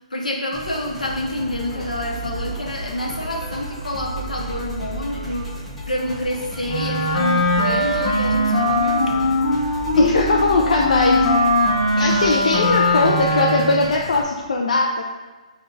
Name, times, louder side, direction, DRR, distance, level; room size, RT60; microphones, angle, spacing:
voice 1, 0.0-9.4, left 1 dB, 90° left, 0 dB, 0.8 m, -28 dB
sound 1, 0.5-14.2, equal, ahead, 0.9 m, -37 dB
sound 2, 1.0-12.7, right 4 dB, 15° right, 0.3 m, -35 dB
Wind instrument woodwind instrument, 6.6-13.9, left 1 dB, 40° left, 0.8 m, -20 dB
voice 2, 10.0-11.2 12.0-15.0, left 3 dB, 70° left, -1 dB, 0.4 m, -19 dB
3.8 x 2.3 x 3.9 m, 1.2 s
figure-of-eight pair, 135°, 4 cm